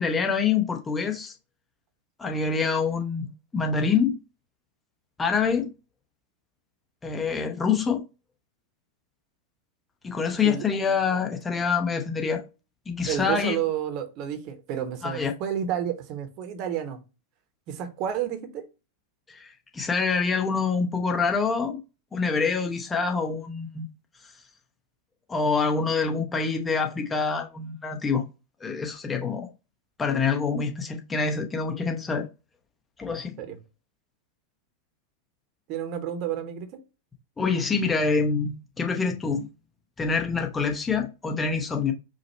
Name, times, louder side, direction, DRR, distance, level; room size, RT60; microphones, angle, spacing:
voice 1, 0.0-1.3 2.2-4.2 5.2-5.7 7.0-8.0 10.0-12.4 12.9-13.6 15.0-15.3 19.3-21.8 22.1-23.9 25.3-28.2 28.6-29.5 30.0-32.3 33.0-33.4 37.4-39.5 40.0-41.9, left 5 dB, 15° left, 0.7 m, -26 dB
voice 2, 13.1-17.0 17.7-18.7 33.4-33.6 35.7-36.8, right 9 dB, 40° right, 0.8 m, -30 dB
4.9 x 2.1 x 4.2 m
figure-of-eight pair, 90°, 0 cm